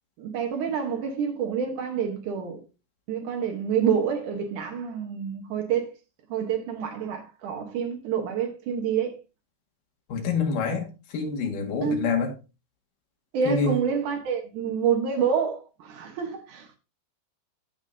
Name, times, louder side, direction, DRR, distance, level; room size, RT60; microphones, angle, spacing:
voice 1, 0.2-2.6 3.1-5.9 6.3-9.1 11.8-12.1 13.3-16.8, right 7 dB, 80° right, 1.8 m, -27 dB
voice 2, 10.1-10.9 11.1-12.3 13.5-13.8, left 4 dB, 55° left, 3.0 m, -26 dB
15.0 x 5.3 x 2.7 m
omnidirectional pair, 5.3 m